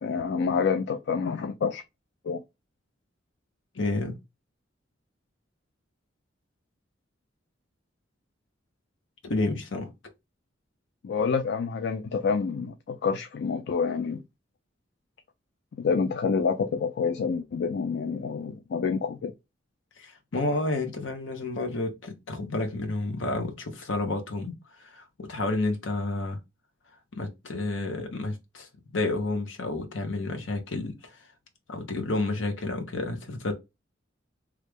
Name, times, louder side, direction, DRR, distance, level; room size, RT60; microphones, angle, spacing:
voice 1, 0.0-1.8 2.2-2.4 11.0-14.2 15.8-19.3, left 5 dB, 60° left, 0.4 m, -27 dB
voice 2, 3.7-4.2 9.2-9.9 20.0-24.5 24.8-26.4 27.2-31.3 31.7-33.5, left 2 dB, 75° left, 0.8 m, -30 dB
3.1 x 2.4 x 3.4 m
head